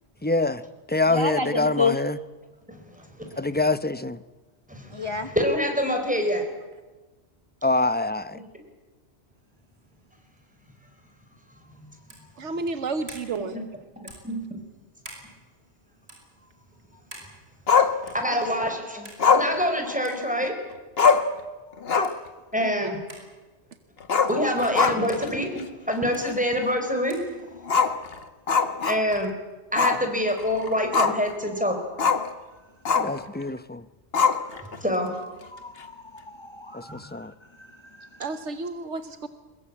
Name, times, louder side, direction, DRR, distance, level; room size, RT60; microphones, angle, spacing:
voice 1, 0.2-0.6 0.9-2.2 3.4-4.2 7.6-8.4 33.0-33.8 36.7-37.3, left 2 dB, 10° left, 14 dB, 0.6 m, -25 dB
voice 2, 1.1-2.0 4.9-5.3 35.5-37.2 38.0-38.3, left 4 dB, 25° left, 7 dB, 1.1 m, -30 dB
voice 3, 2.7-3.4 4.7-6.5 8.3-8.5 11.8-11.9 13.4-13.6 14.2-14.6 18.1-20.6 22.5-23.0 24.3-27.2 28.9-29.3 29.7-31.8 34.6-35.1 36.9-37.0, equal, 5° right, 4 dB, 4.5 m, -26 dB
sound 1, 12.1-12.3 13.1-13.3 14.1-14.3 15.0-15.3 16.0-16.2 17.1-17.3 18.1-18.3 19.0-19.2 20.0-20.2 21.0-21.2 22.0-22.2 23.1-23.3 24.1-24.3 25.1-25.3 26.1-26.3 27.1-27.3, right 1 dB, 65° right, 6.2 m, -44 dB
voice 4, 12.4-13.6 22.6-22.9 38.2-39.3, right 3 dB, 85° right, 10 dB, 1.4 m, -31 dB
Growling, 17.7-18.5 19.2-20.4 20.7-20.8 21.0-21.4 21.8-22.3 22.6-22.7 24.0-25.3 25.6-25.7 26.2-26.3 27.6-29.3 29.8-30.0 30.4-31.3 32.0-32.3 32.8-33.2 34.1-34.8, left 5 dB, 60° left, 1.5 m, -22 dB
22.5 x 21.0 x 8.6 m, 1.2 s
omnidirectional pair, 1.2 m